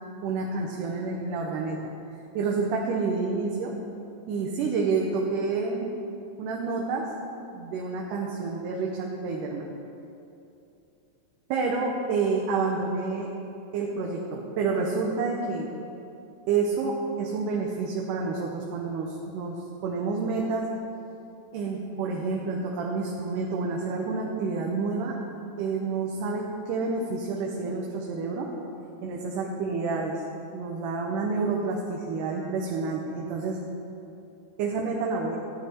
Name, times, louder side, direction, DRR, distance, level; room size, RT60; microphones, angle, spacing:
voice 1, 0.2-1.8 2.3-3.7 4.3-6.0 6.4-7.1 7.5-9.7 11.5-13.3 13.7-15.7 16.5-19.6 19.8-20.6 21.5-25.2 25.6-28.5 29.0-30.2 30.5-33.6 34.6-35.4, right 4 dB, 90° right, -1 dB, 2.5 m, -29 dB
14.5 x 9.6 x 4.5 m, 2.7 s
omnidirectional pair, 3.6 m